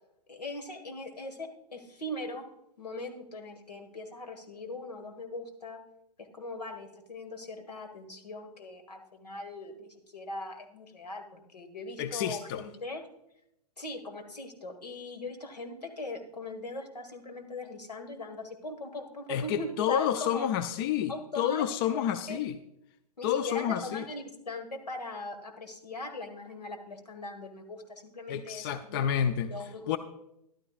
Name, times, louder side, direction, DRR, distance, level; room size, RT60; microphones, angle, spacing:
voice 1, 0.3-2.4 2.8-5.8 6.2-13.0 13.8-20.5 21.1-21.6 21.9-22.4 23.2-29.1 29.5-29.9, left 2 dB, 85° left, 5 dB, 1.7 m, -40 dB
voice 2, 12.0-12.6 19.3-22.5 23.2-24.0 28.3-29.5 29.9-30.0, left 9 dB, 35° left, 11 dB, 0.5 m, -29 dB
13.5 x 11.5 x 2.4 m, 0.81 s
figure-of-eight pair, 120°, 20 cm